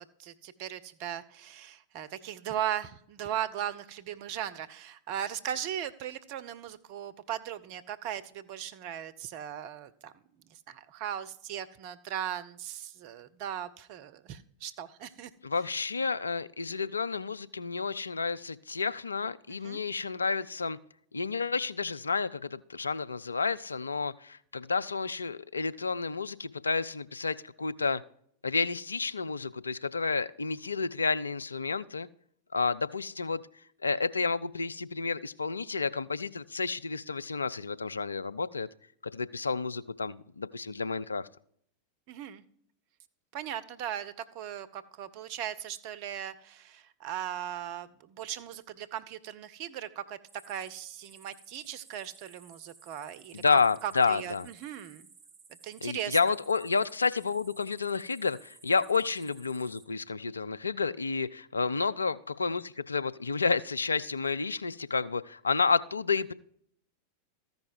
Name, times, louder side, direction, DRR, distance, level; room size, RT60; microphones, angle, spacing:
voice 1, 0.0-10.1 10.7-15.3 19.5-19.8 42.1-42.4 43.3-50.2 50.5-55.1 55.6-56.3, right 10 dB, 45° right, 12 dB, 0.6 m, -38 dB
voice 2, 15.4-20.8 21.1-28.0 28.4-32.1 32.5-33.4 33.8-38.7 39.0-41.2 53.3-54.5 55.8-66.3, left 4 dB, 75° left, 13 dB, 0.3 m, -30 dB
sound 1, 50.3-59.8, right 5 dB, 20° right, 1.1 m, -57 dB
14.0 x 5.3 x 4.5 m, 0.64 s
figure-of-eight pair, 90°, 0 cm